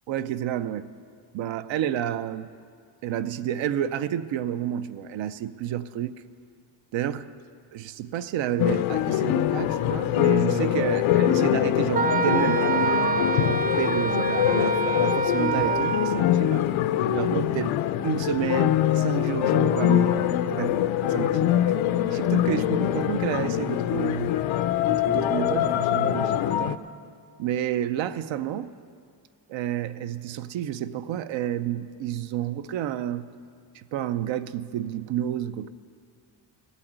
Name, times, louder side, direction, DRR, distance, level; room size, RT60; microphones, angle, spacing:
voice 1, 0.1-0.9 1.3-2.5 3.0-6.2 6.9-7.3 7.7-12.9 13.3-16.7 17.1-17.8 18.0-20.8 21.1-21.7 22.1-24.4 24.9-26.8 27.4-28.7 29.5-33.3 33.7-35.7, right 11 dB, 70° right, 0.7 m, -30 dB
sound 1, 8.6-26.8, left 12 dB, 80° left, 0.6 m, -24 dB
Wind instrument woodwind instrument, 11.9-16.3, right 4 dB, 20° right, 0.3 m, -26 dB
15.0 x 8.4 x 8.8 m
cardioid pair, 150°, 47 cm